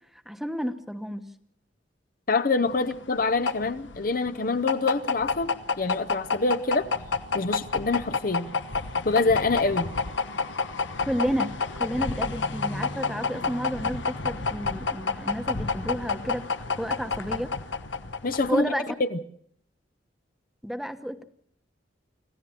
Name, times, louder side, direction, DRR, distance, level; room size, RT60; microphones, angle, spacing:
voice 1, 0.3-1.3 11.1-16.4 16.8-17.5 18.5-19.0 20.6-21.2, equal, ahead, 1.1 m, -31 dB
voice 2, 2.3-5.5 5.8-6.9 7.3-8.5 9.0-9.9 18.2-18.7 19.0-19.2, left 3 dB, 50° left, 0.9 m, -25 dB
sound 1, 2.7-18.7, left 4 dB, 80° left, 1.2 m, -29 dB
26.0 x 15.0 x 7.6 m
head